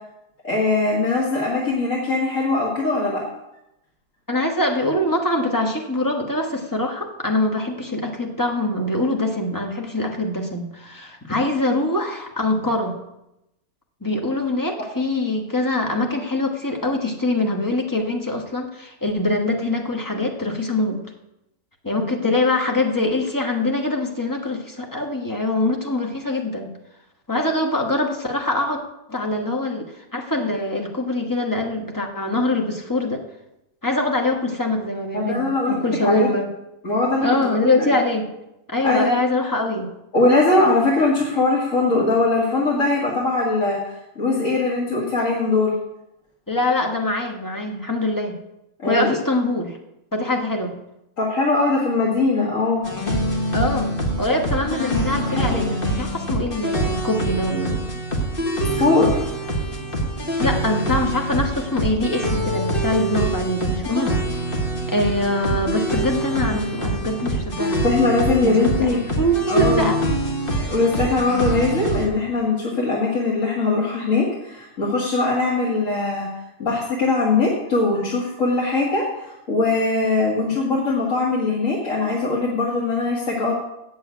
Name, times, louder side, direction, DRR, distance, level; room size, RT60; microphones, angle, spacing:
voice 1, 0.4-3.2 35.1-35.7 36.0-36.3 36.8-37.3 37.6-38.0 38.8-39.1 40.1-43.8 44.2-45.8 48.8-49.1 51.2-52.8 55.3-55.7 58.6-59.2 67.8-69.0 69.5-69.9 70.6-76.3 76.6-83.5, left 3 dB, 60° left, -4 dB, 2.2 m, -21 dB
voice 2, 4.3-13.0 14.0-21.0 21.8-26.7 27.3-28.8 29.1-33.2 33.8-36.5 37.2-38.3 38.7-39.9 46.5-48.4 48.9-49.8 50.1-50.7 53.5-57.8 60.4-64.4 64.9-67.8 68.4-70.0, left 1 dB, 15° left, 1 dB, 1.3 m, -23 dB
sound 1, 52.8-72.1, right 1 dB, 40° left, 1.6 m, -25 dB
8.6 x 7.0 x 8.2 m, 0.89 s
omnidirectional pair, 1.5 m